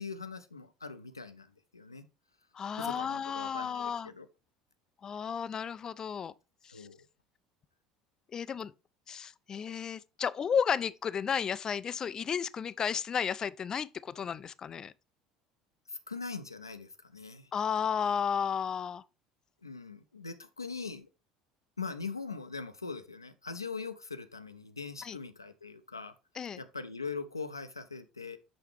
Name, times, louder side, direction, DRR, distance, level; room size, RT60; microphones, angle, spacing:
voice 1, 0.0-2.1 2.8-4.3 6.7-7.1 15.9-17.5 19.6-21.1 21.8-26.1 26.6-28.4, left 4 dB, 85° left, 0.5 m, -41 dB
voice 2, 2.5-4.1 5.0-6.3 6.6-6.9 8.3-8.7 9.1-14.9 17.5-19.0 25.0-25.2 26.4-26.6, left 7 dB, 30° left, 0.3 m, -33 dB
6.3 x 5.6 x 3.1 m
figure-of-eight pair, 65°, 2 cm